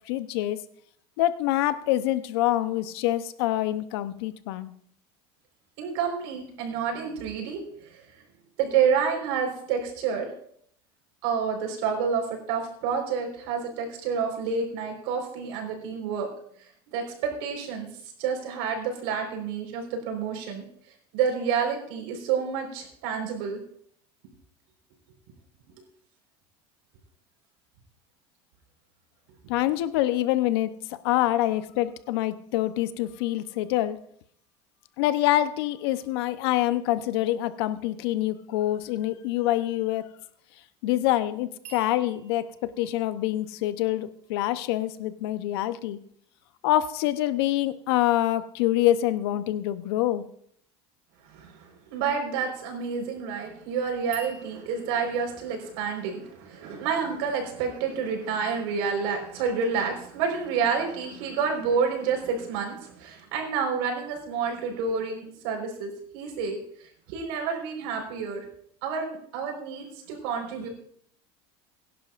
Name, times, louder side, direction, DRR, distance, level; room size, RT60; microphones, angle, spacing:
voice 1, 0.1-0.6 1.2-4.7 29.5-30.7 31.0-34.0 35.0-40.0 40.8-46.0 46.6-50.3, left 14 dB, 85° left, 13 dB, 0.8 m, -26 dB
voice 2, 5.8-8.2 8.6-10.3 11.2-16.3 16.9-17.9 18.2-20.6 21.1-23.6 29.7-29.8 51.2-68.4 68.8-70.7, right 6 dB, 80° right, 2 dB, 4.5 m, -29 dB
sound 1, 41.6-44.7 54.1-54.9, right 5 dB, 60° right, 5.7 m, -48 dB
22.0 x 11.0 x 2.5 m, 0.66 s
supercardioid pair, 125°, 13 cm